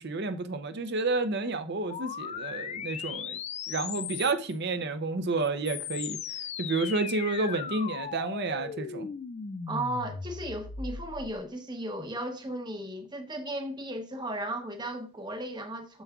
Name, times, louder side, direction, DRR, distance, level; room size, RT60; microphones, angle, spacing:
voice 1, 0.0-3.4 3.7-6.2 6.6-9.1, right 3 dB, 50° right, 0.6 m, -30 dB
sound 1, 1.9-4.6 5.4-11.4, left 7 dB, 30° left, 0.3 m, -37 dB
voice 2, 9.7-16.0, right 1 dB, 20° right, 0.9 m, -35 dB
7.1 x 6.9 x 2.3 m
head